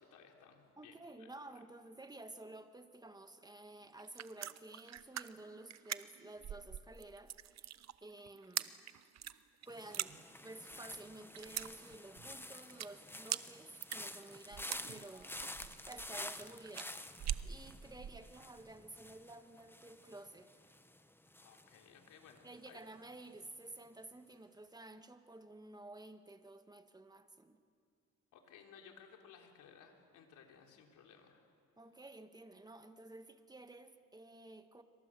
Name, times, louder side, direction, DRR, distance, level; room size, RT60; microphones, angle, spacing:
voice 1, 0.0-0.9 1.2-1.3 21.4-22.8 28.3-31.5, left 7 dB, 85° left, 2 dB, 3.6 m, -59 dB
voice 2, 0.8-8.8 9.7-10.1 10.4-20.6 22.4-27.6 31.8-34.8, right 2 dB, 15° right, 8 dB, 1.6 m, -53 dB
sound 1, 3.9-18.2, right 11 dB, 60° right, 0.9 m, -44 dB
sound 2, 9.7-22.7 23.0-23.4, left 1 dB, 5° left, 1.2 m, -50 dB
27.5 x 25.0 x 7.7 m, 2.3 s
cardioid pair, 90°, 30 cm